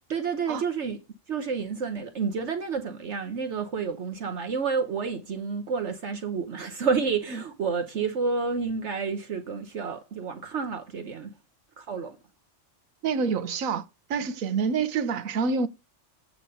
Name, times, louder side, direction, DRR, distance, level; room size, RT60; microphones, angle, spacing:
voice 1, 0.1-1.0 1.3-11.3 11.8-12.2, right 5 dB, 60° right, 1.2 m, -30 dB
voice 2, 13.0-15.7, right 5 dB, 90° right, 1.3 m, -27 dB
8.4 x 3.7 x 5.3 m
omnidirectional pair, 1.4 m